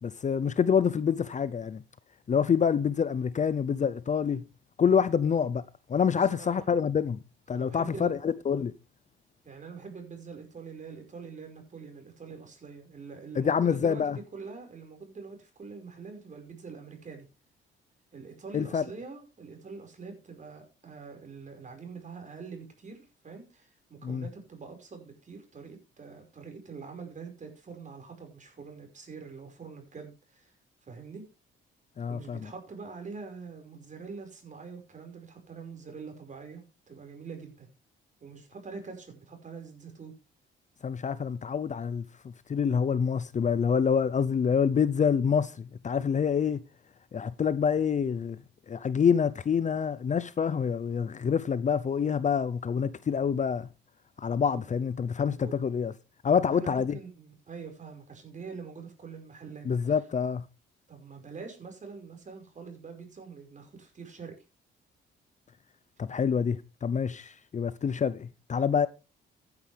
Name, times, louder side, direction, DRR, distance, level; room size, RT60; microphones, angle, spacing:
voice 1, 0.0-1.8 2.3-4.4 4.8-5.6 5.9-7.2 7.5-8.7 13.4-14.2 18.5-18.8 24.0-24.2 32.0-32.5 40.8-42.0 42.5-46.6 47.1-48.4 48.7-53.7 54.2-55.9 56.2-57.0 59.7-60.4 66.0-68.9, left 7 dB, 40° left, 0.7 m, -27 dB
voice 2, 6.1-6.7 7.5-8.1 9.4-17.3 18.1-30.5 30.9-31.2 32.1-37.7 38.2-40.2 54.5-54.6 55.3-55.5 56.4-60.0 60.9-64.4, right 5 dB, 40° right, 5.4 m, -44 dB
15.0 x 9.8 x 3.4 m
cardioid pair, 90°, 20 cm